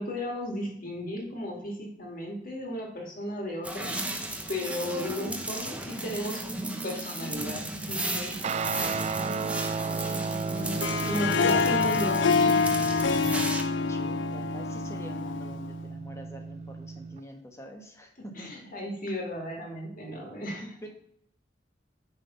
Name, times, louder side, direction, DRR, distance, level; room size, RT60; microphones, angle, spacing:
voice 1, 0.0-4.0 4.5-6.4 6.8-9.0 11.1-12.6 18.4-20.8, left 1 dB, 50° left, 0 dB, 2.1 m, -35 dB
sound 1, 3.6-13.6, right 1 dB, 5° right, 0.8 m, -35 dB
Guitar, 8.4-17.2, right 4 dB, 35° right, 0.3 m, -34 dB
Harp, 10.6-15.8, left 5 dB, 90° left, 0.5 m, -26 dB
voice 2, 10.8-12.6 13.9-18.7 20.8-20.9, equal, 15° left, 3 dB, 1.3 m, -45 dB
9.5 x 3.8 x 5.6 m, 0.69 s
head